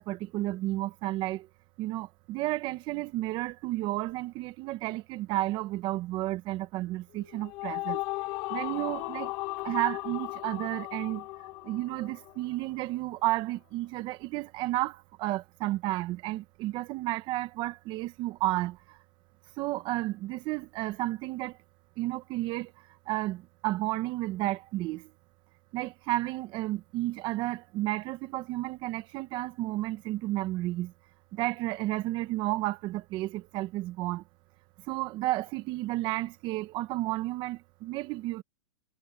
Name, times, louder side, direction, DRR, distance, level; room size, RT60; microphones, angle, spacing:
voice 1, 0.0-1.5 1.8-8.0 8.5-9.3 9.6-11.3 11.6-19.0 19.6-21.6 22.0-25.1 25.7-30.9 31.3-34.2 34.9-38.4, right 17 dB, 35° right, 1.0 m, -32 dB
sound 1, 7.2-12.7, left 22 dB, 40° left, 1.2 m, -36 dB
supercardioid pair, 150°, 14 cm